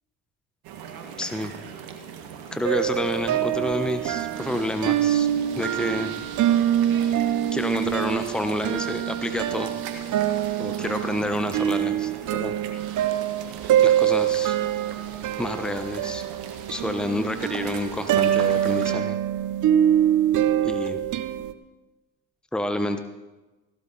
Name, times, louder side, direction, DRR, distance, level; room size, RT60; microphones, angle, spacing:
sound 1, 0.6-18.9, right 7 dB, 70° right, 1.8 m, -40 dB
voice 1, 1.2-1.5 2.5-5.3 5.6-6.1 7.5-9.7 10.6-12.5 13.8-14.6 15.4-16.2 16.7-19.2 20.6-21.0 22.5-23.0, left 1 dB, ahead, 8 dB, 1.1 m, -29 dB
sound 2, 2.6-21.5, right 11 dB, 50° right, 0.9 m, -24 dB
16.0 x 12.5 x 4.2 m, 1.1 s
hypercardioid pair, 60°, 38 cm